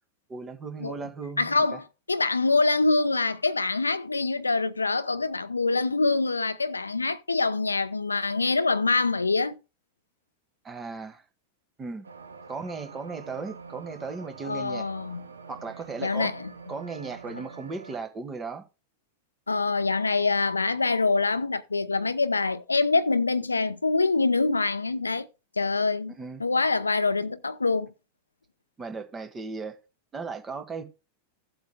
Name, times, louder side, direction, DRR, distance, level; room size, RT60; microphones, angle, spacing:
voice 1, 0.3-1.8 10.6-11.2 11.8-12.0 12.5-14.9 15.5-16.3 16.7-18.6 26.2-26.4 28.8-29.8 30.1-30.8, right 4 dB, 20° right, 1.5 m, -36 dB
voice 2, 1.4-9.6 14.4-15.2 16.0-16.5 19.5-25.3 25.6-26.1 26.4-27.9, left 3 dB, 80° left, 0.7 m, -25 dB
sound 1, 12.0-18.0, right 4 dB, 75° right, 1.0 m, -45 dB
15.5 x 8.0 x 2.2 m
figure-of-eight pair, 90°, 0 cm